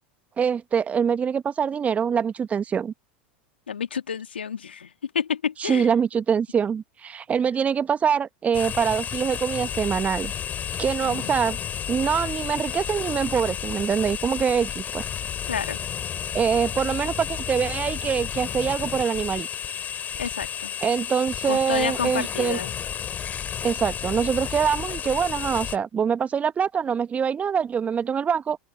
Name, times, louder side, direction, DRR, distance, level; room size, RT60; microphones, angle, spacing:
voice 1, 0.4-2.9 5.6-10.3 10.8-11.6 11.9-15.0 16.3-19.5 20.8-22.6 23.6-28.6, right 7 dB, 25° right, 1.4 m, -24 dB
voice 2, 3.7-5.9 11.0-11.3 15.5-15.8 20.1-20.7 21.5-22.7, left 7 dB, 75° left, 2.4 m, -30 dB
sound 1, 8.5-25.8, left 9 dB, 30° left, 5.8 m, -32 dB
open air
figure-of-eight pair, 85°, 6 cm